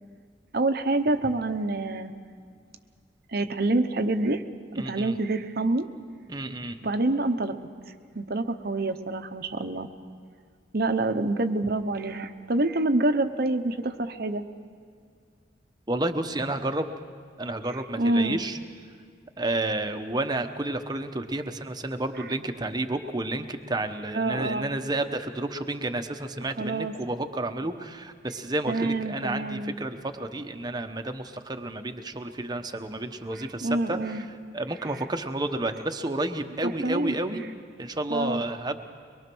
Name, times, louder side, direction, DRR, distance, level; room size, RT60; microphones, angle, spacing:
voice 1, 0.5-2.1 3.3-4.4 4.8-5.9 6.8-7.6 8.1-9.9 10.7-14.4 17.7-18.4 24.1-24.7 26.6-26.9 28.7-29.7 33.3-34.2 34.9-35.0 36.6-37.2 38.1-38.4, right 2 dB, 55° right, 8 dB, 1.0 m, -27 dB
voice 2, 4.7-5.2 6.3-6.8 15.9-16.9 17.4-18.6 19.4-34.0 34.5-37.4 37.8-38.8, right 2 dB, 25° right, 7 dB, 1.0 m, -31 dB
24.0 x 22.0 x 6.2 m, 2.1 s
head